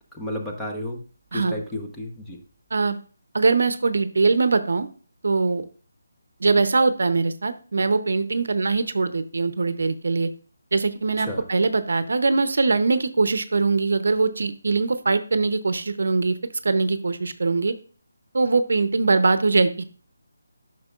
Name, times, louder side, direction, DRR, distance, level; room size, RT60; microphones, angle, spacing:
voice 1, 0.1-1.0 1.3-2.4 11.3-11.4, left 1 dB, 5° left, -1 dB, 1.0 m, -32 dB
voice 2, 3.3-4.9 5.2-5.6 6.4-10.3 10.7-16.4 16.6-17.7 18.3-19.8, right 3 dB, 70° right, 12 dB, 0.7 m, -22 dB
9.6 x 6.1 x 2.4 m, 0.41 s
figure-of-eight pair, 160°, 0 cm